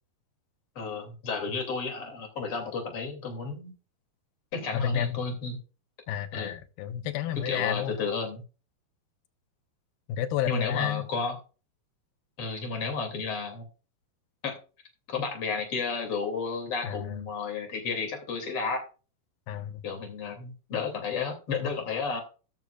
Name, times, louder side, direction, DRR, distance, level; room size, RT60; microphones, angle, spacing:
voice 1, 0.8-3.7 4.5-5.6 6.3-6.5 7.5-8.4 10.5-11.4 12.4-13.6 14.4-14.6 15.1-18.8 19.8-22.2, left 5 dB, 40° left, 3.5 m, -32 dB
voice 2, 4.7-5.2 6.1-8.0 10.1-11.1 16.8-17.2 19.5-19.8, left 9 dB, 80° left, 2.7 m, -31 dB
13.0 x 10.5 x 2.5 m
omnidirectional pair, 4.4 m